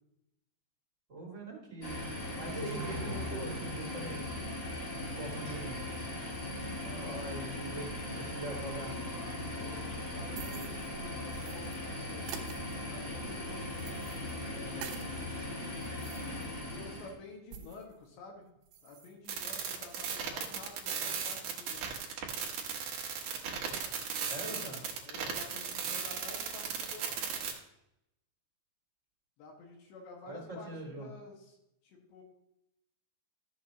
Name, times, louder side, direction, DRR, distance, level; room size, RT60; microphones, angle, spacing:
voice 1, 1.1-2.1 2.4-4.3 5.1-5.7 6.7-8.9 24.3-24.8 30.3-31.1, right 2 dB, 20° right, -3 dB, 2.3 m, -42 dB
sound 1, 1.8-17.1, left 1 dB, 30° left, 1.4 m, -39 dB
voice 2, 6.7-7.2 9.2-12.3 12.9-14.0 14.4-15.2 16.6-18.5 18.8-21.9 24.2-27.2 29.4-31.6 31.8-32.2, left 3 dB, 80° left, 1 dB, 4.0 m, -51 dB
sound 2, 10.4-11.8 12.2-15.2 15.6-18.0 18.3-18.4 18.6-19.1 19.4-19.8, right 8 dB, 80° right, 3.4 m, -49 dB
sound 3, 19.3-27.5, right 7 dB, 65° right, 2.1 m, -36 dB
13.0 x 7.4 x 2.9 m, 0.82 s
omnidirectional pair, 5.1 m